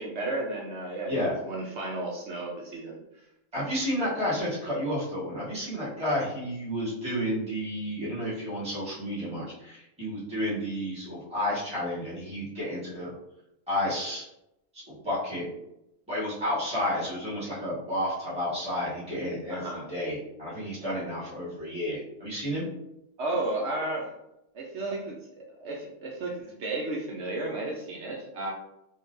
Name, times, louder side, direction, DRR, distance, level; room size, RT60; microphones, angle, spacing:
voice 1, 0.0-3.0 19.5-19.9 23.2-24.1 24.5-28.5, right 2 dB, 65° right, -1 dB, 0.7 m, -33 dB
voice 2, 3.5-13.1 13.7-14.2 14.7-15.5 16.1-22.6, equal, 5° right, -10 dB, 1.3 m, -31 dB
3.6 x 2.3 x 2.5 m, 0.85 s
omnidirectional pair, 1.5 m